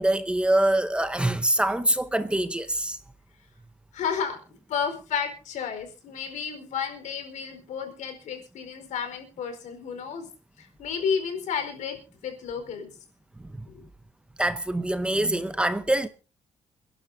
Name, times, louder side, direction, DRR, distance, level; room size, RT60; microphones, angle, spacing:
voice 1, 0.0-3.0 13.5-13.6 14.4-16.1, right 1 dB, 10° right, 0.8 m, -24 dB
voice 2, 3.9-4.4 4.7-10.3 10.6-13.0 13.7-13.9, left 6 dB, 80° left, 4.6 m, -32 dB
28.5 x 11.5 x 2.7 m
cardioid pair, 155°, 12 cm